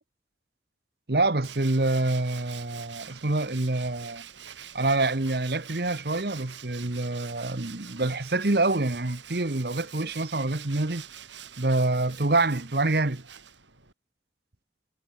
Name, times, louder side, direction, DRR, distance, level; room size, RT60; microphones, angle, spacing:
voice 1, 1.1-4.2 4.7-11.0 11.6-13.2, right 2 dB, 60° right, 1.2 m, -26 dB
Tools, 1.4-13.9, right 9 dB, 85° right, 6.7 m, -45 dB
head